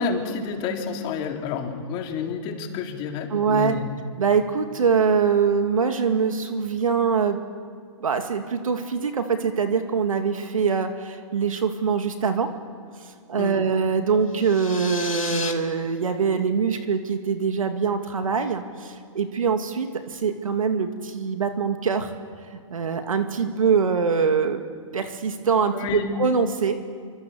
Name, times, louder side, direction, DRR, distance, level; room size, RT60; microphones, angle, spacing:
voice 1, 0.0-4.0 13.4-13.7 25.7-26.1, left 5 dB, 30° left, 3 dB, 3.7 m, -29 dB
voice 2, 3.3-3.8 4.2-7.4 8.0-12.5 13.3-22.1 22.5-24.6 24.9-26.8, right 6 dB, 85° right, 6 dB, 2.5 m, -23 dB
sound 1, 14.3-15.5, left 5 dB, 90° left, 3.3 m, -33 dB
26.5 x 25.5 x 8.1 m, 2.2 s
hypercardioid pair, 140°, 17 cm